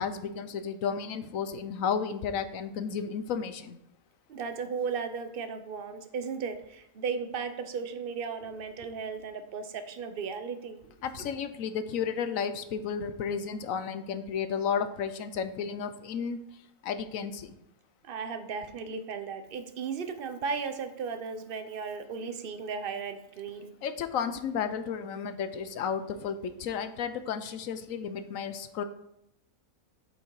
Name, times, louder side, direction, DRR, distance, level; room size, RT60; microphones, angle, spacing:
voice 1, 0.0-3.8 11.0-16.4 16.8-17.5 23.8-28.8, left 7 dB, 75° left, 10 dB, 1.1 m, -33 dB
voice 2, 4.3-10.8 18.0-23.7, right 5 dB, 45° right, 9 dB, 0.9 m, -35 dB
8.3 x 6.2 x 4.7 m, 0.78 s
omnidirectional pair, 1.5 m